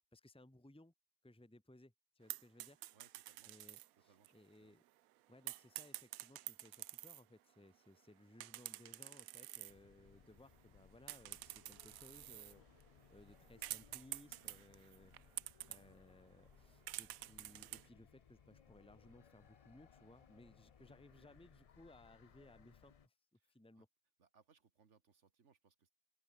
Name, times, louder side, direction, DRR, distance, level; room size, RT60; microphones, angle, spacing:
voice 1, 0.1-0.9 1.2-2.8 3.5-4.8 5.3-12.7 13.1-15.1 15.7-23.2 23.5-23.9, left 1 dB, 5° left, 1.7 m, -62 dB
sound 1, 2.3-3.9 4.2-4.3 5.5-7.2 8.4-9.7 10.2-10.8 11.1-15.8 16.5-16.6 16.9-17.9, right 15 dB, 85° right, 1.0 m, -49 dB
voice 2, 2.9-3.5 3.9-4.7 15.8-16.0 23.4-23.8 24.2-25.9, right 6 dB, 60° right, 1.7 m, -72 dB
sound 2, 9.7-23.1, left 7 dB, 70° left, 0.3 m, -66 dB
sound 3, 13.4-21.8, left 1 dB, 40° left, 6.2 m, -82 dB
open air
omnidirectional pair, 1.4 m